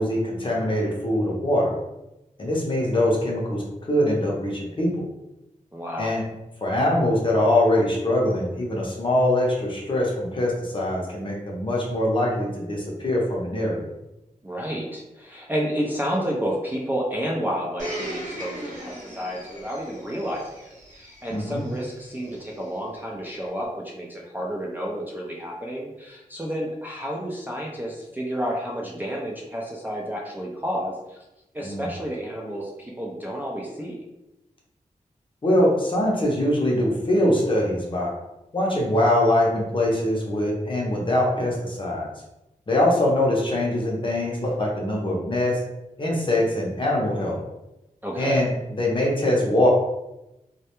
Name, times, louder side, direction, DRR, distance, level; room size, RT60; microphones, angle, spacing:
voice 1, 0.0-1.7 2.4-3.6 3.9-5.0 6.0-6.2 6.6-13.8 21.3-21.6 31.6-31.9 35.4-38.1 38.5-42.1 42.7-45.6 46.0-47.4 48.2-49.7, left 1 dB, 40° left, -3 dB, 0.6 m, -23 dB
voice 2, 5.7-6.2 14.4-31.2 31.5-34.0 48.0-48.4, equal, 15° right, -3 dB, 0.3 m, -30 dB
Domestic sounds home sounds, 17.8-22.6 23.4-23.5, right 1 dB, 65° right, 0.7 m, -38 dB
2.2 x 2.1 x 2.9 m, 0.93 s
wide cardioid pair, 125°, 14 cm